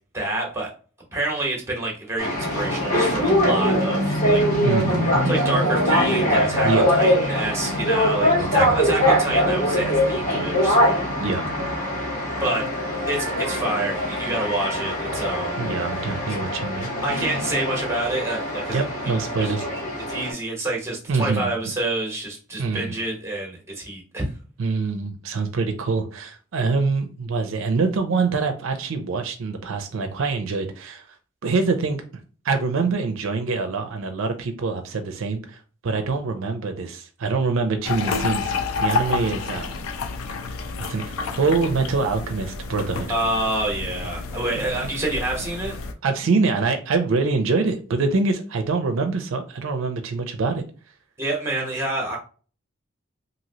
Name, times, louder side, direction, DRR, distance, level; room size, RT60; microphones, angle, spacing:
voice 1, 0.1-0.7 1.1-4.4 5.2-11.1 12.4-12.7 13.1-15.6 16.3-16.4 17.0-19.5 20.1-24.3 43.1-45.8 51.2-52.2, right 2 dB, 15° right, 0.9 m, -28 dB
sound 1, 2.2-20.3, equal, 40° left, 1.2 m, -22 dB
voice 2, 4.6-5.3 6.6-7.0 8.4-8.9 11.2-11.5 15.6-16.9 18.7-19.7 21.1-21.5 22.6-22.9 24.6-31.1 31.4-32.0 32.4-38.5 38.8-39.9 40.8-43.1 46.0-50.6, right 4 dB, 70° right, 0.4 m, -25 dB
sound 2, 37.8-45.9, left 4 dB, 90° left, 0.5 m, -29 dB
3.0 x 2.7 x 2.7 m
head